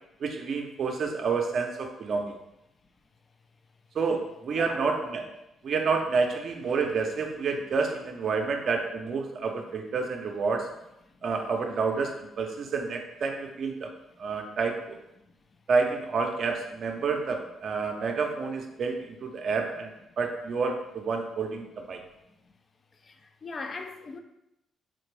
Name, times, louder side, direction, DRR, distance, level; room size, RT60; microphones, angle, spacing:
voice 1, 0.2-2.4 3.9-5.3 5.6-10.7 11.2-13.9 14.2-15.0 15.7-22.0, right 4 dB, 60° right, 0.5 m, -29 dB
voice 2, 4.5-4.8 23.0-24.2, left 3 dB, 40° left, 0.4 m, -39 dB
3.7 x 2.5 x 3.2 m
cardioid pair, 80°, 0 cm